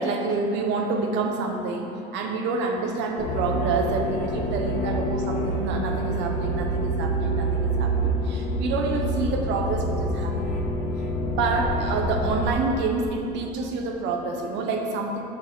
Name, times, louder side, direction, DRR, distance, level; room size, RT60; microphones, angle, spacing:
voice 1, 0.0-10.6 11.3-15.2, right 3 dB, 60° right, 3 dB, 0.9 m, -28 dB
sound 1, 3.2-12.5, right 1 dB, 35° left, 1.1 m, -26 dB
6.3 x 6.0 x 3.7 m, 2.7 s
supercardioid pair, 100°, 21 cm